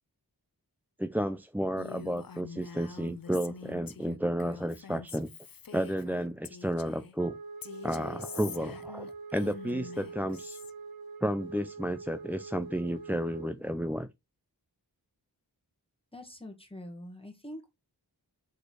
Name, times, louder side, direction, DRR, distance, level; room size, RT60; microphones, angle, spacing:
voice 1, 1.0-5.3 5.7-7.4 7.8-9.1 9.3-10.6 11.2-14.1, equal, 5° right, 0.6 m, -32 dB
Female speech woman speaking, 1.8-7.1 7.6-10.7, left 6 dB, 60° left, 0.8 m, -46 dB
Wind instrument woodwind instrument, 7.2-13.6, right 4 dB, 60° right, 1.0 m, -44 dB
voice 2, 16.1-17.7, left 1 dB, 15° left, 2.0 m, -44 dB
6.4 x 5.3 x 4.7 m
wide cardioid pair, 70°, 39 cm